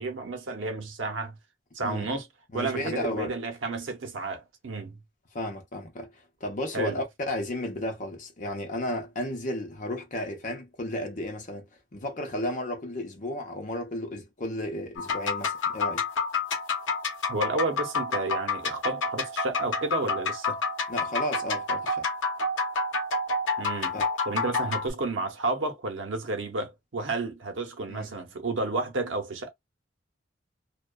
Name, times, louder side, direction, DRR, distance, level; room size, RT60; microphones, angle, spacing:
voice 1, 0.0-1.4 1.7-2.3 2.5-5.0 6.7-7.0 17.3-20.6 23.6-24.0 24.3-29.5, right 3 dB, 85° right, 0.7 m, -31 dB
voice 2, 2.5-3.4 5.3-6.1 6.4-16.0 20.9-22.1 23.9-24.1 27.9-28.1, left 1 dB, 45° left, 0.8 m, -33 dB
sound 1, 15.0-24.9, left 3 dB, 80° left, 0.7 m, -29 dB
2.7 x 2.2 x 2.2 m
head